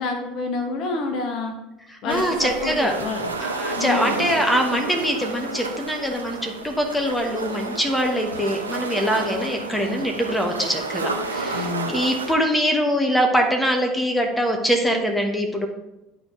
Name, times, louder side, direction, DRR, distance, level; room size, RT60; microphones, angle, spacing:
voice 1, 0.0-1.5 2.0-3.3 3.7-4.2 11.5-11.9, left 3 dB, 50° left, 4 dB, 1.0 m, -28 dB
voice 2, 1.9-2.9 3.4-15.7, equal, 5° left, 3 dB, 1.2 m, -23 dB
sound 1, 2.1-12.3, right 3 dB, 85° right, 0.6 m, -31 dB
11.0 x 4.2 x 3.2 m, 0.94 s
figure-of-eight pair, 65°, 0 cm